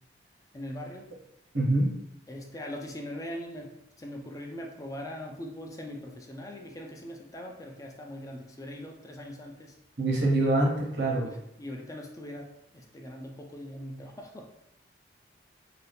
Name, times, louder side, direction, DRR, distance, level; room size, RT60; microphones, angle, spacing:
voice 1, 0.5-1.1 2.3-9.7 11.1-14.5, left 1 dB, 20° left, 1 dB, 0.4 m, -41 dB
voice 2, 1.5-1.9 10.0-11.3, right 2 dB, 75° right, -3 dB, 1.0 m, -25 dB
2.7 x 2.3 x 3.3 m, 0.82 s
head